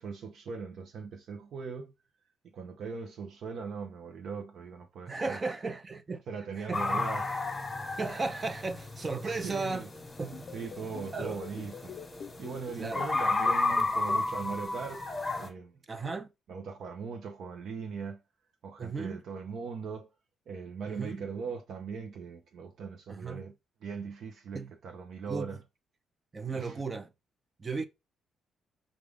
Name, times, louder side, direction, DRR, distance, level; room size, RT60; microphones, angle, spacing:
voice 1, 0.0-1.9 2.5-5.5 6.3-7.4 9.3-9.9 10.5-12.0 12.4-15.0 15.4-15.7 16.5-18.2 18.6-20.1 20.5-23.5 23.8-25.6 26.5-26.8, right 5 dB, 65° right, 0.7 m, -40 dB
voice 2, 5.1-6.2 6.6-7.1 8.0-9.8 10.2-10.4 11.1-11.4 12.8-13.1 15.9-16.3 18.8-19.2 20.9-21.2 23.1-23.4 24.5-24.7 25.3-25.6 26.3-27.1 27.6-27.9, right 3 dB, 30° right, 0.6 m, -35 dB
sound 1, 6.7-15.5, left 3 dB, 20° left, 1.2 m, -33 dB
sound 2, 10.3-14.2, left 8 dB, 60° left, 0.4 m, -44 dB
4.9 x 2.5 x 3.5 m
cardioid pair, 90°, 0 cm